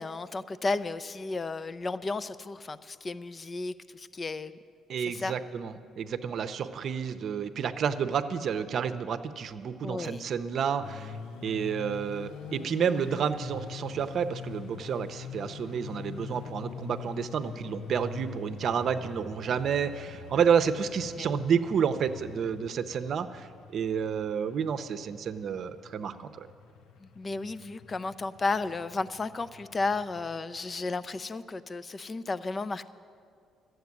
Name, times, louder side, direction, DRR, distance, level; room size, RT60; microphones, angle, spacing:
voice 1, 0.0-4.6 5.1-5.3 9.8-10.3 21.2-21.3 27.0-32.9, left 3 dB, 30° left, 15 dB, 0.5 m, -33 dB
voice 2, 4.9-11.1 11.4-26.5, right 7 dB, 60° right, 9 dB, 0.7 m, -30 dB
sound 1, 10.8-30.4, left 7 dB, 80° left, 0.6 m, -44 dB
12.5 x 7.9 x 9.5 m, 2.3 s
cardioid pair, 85°, 0 cm